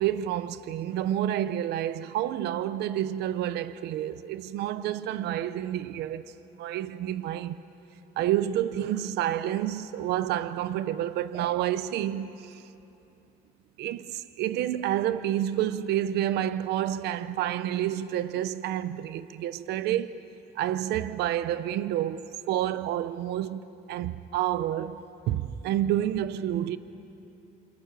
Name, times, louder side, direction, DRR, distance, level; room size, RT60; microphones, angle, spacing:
voice 1, 0.0-7.6 8.2-12.7 13.8-20.2 20.6-23.6 23.9-26.8, right 12 dB, 80° right, 0.8 m, -29 dB
28.5 x 27.0 x 6.9 m
cardioid pair, 110°, 17 cm